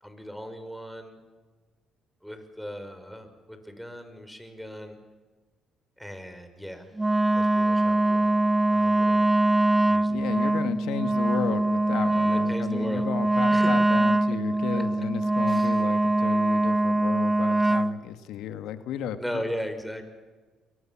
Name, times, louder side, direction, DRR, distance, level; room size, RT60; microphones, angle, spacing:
voice 1, 0.0-1.2 2.2-5.0 6.0-6.9 7.3-8.3 8.7-9.3 9.9-10.2 12.2-13.1 13.5-13.7 14.3-14.4 14.7-14.8 15.5-15.8 19.2-20.0, equal, ahead, 8 dB, 5.9 m, -37 dB
Wind instrument woodwind instrument, 7.0-18.0, right 2 dB, 15° right, 0.8 m, -23 dB
voice 2, 10.0-19.4, left 10 dB, 70° left, 10 dB, 1.9 m, -34 dB
29.0 x 23.0 x 7.4 m, 1.3 s
hypercardioid pair, 55°, 0 cm